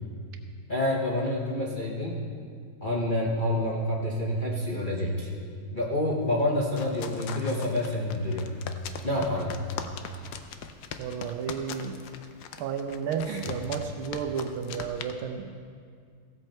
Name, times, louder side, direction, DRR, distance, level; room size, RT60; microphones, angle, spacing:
voice 1, 0.7-2.2 2.8-5.3 5.7-8.5 9.0-9.6 13.3-13.6, left 1 dB, 45° left, -3 dB, 0.6 m, -28 dB
sound 1, 6.3-15.1, left 7 dB, 70° left, 1.0 m, -41 dB
voice 2, 11.0-12.0 12.6-15.5, right 7 dB, 90° right, 5 dB, 1.5 m, -32 dB
15.5 x 7.9 x 4.4 m, 2.2 s
omnidirectional pair, 2.2 m